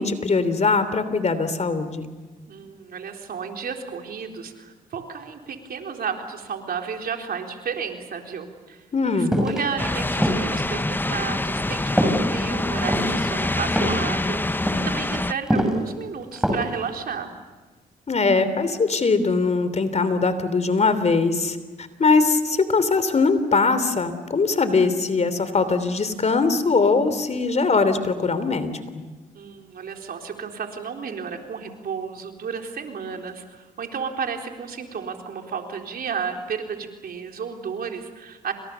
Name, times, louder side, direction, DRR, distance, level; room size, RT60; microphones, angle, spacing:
voice 1, 0.0-2.1 8.9-9.4 18.1-28.8, left 4 dB, 45° left, 12 dB, 3.2 m, -21 dB
voice 2, 2.5-8.8 9.1-17.3 29.3-38.5, right 6 dB, 70° right, 3 dB, 4.0 m, -32 dB
sound 1, 9.3-9.6 10.2-10.6 11.0-11.2 12.0-12.3 12.7-13.2 13.8-14.1 14.5-14.8 15.5-15.8 16.4-16.8 17.1-17.2, equal, 5° right, 6.8 m, -22 dB
sound 2, 9.8-15.3, left 2 dB, 10° left, 0.8 m, -25 dB
29.5 x 26.0 x 7.0 m, 1.3 s
cardioid pair, 65°, 16 cm